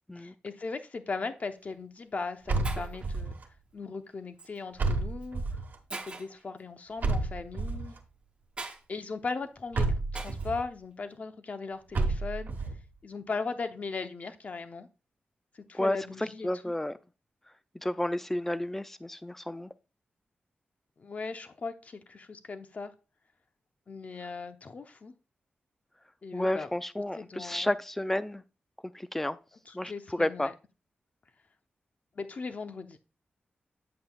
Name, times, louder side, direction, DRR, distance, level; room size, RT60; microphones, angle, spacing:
voice 1, 0.2-3.3 3.7-5.4 6.0-7.9 8.6-9.9 10.1-12.5 13.0-14.9 15.5-16.5 21.0-22.9 23.9-25.1 26.2-26.7 27.2-27.7 29.7-30.5 32.1-33.0, left 4 dB, 45° left, 0.7 m, -38 dB
Shatter, 1.4-1.6 2.3-2.4 2.6-3.1 4.4-4.6 5.2-5.3 5.9-6.4 8.6-8.8 10.1-10.5, right 3 dB, 30° right, 0.8 m, -41 dB
sound 1, 2.5-3.4 4.8-5.8 7.0-8.0 9.7-10.6 11.9-12.8, right 3 dB, 65° right, 1.1 m, -30 dB
voice 2, 16.4-17.0 17.7-19.7 26.3-28.4 28.9-29.4 29.7-30.5, left 1 dB, 10° left, 0.4 m, -31 dB
8.6 x 7.7 x 2.3 m
wide cardioid pair, 140°, 4 cm